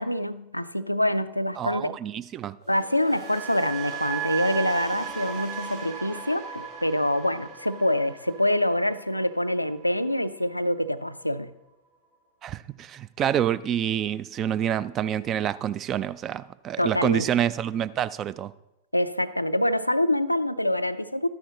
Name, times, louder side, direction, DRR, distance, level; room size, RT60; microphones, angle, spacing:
voice 1, 0.0-2.0 2.7-11.5 16.8-17.3 18.9-21.3, left 1 dB, 90° left, 13 dB, 0.3 m, -25 dB
voice 2, 1.6-2.6 12.4-18.5, right 10 dB, 30° right, 16 dB, 0.3 m, -27 dB
sound 1, 2.6-10.7 11.0-11.4, right 7 dB, 55° right, 4.0 m, -37 dB
13.0 x 9.9 x 2.8 m, 0.90 s
figure-of-eight pair, 90°, 0 cm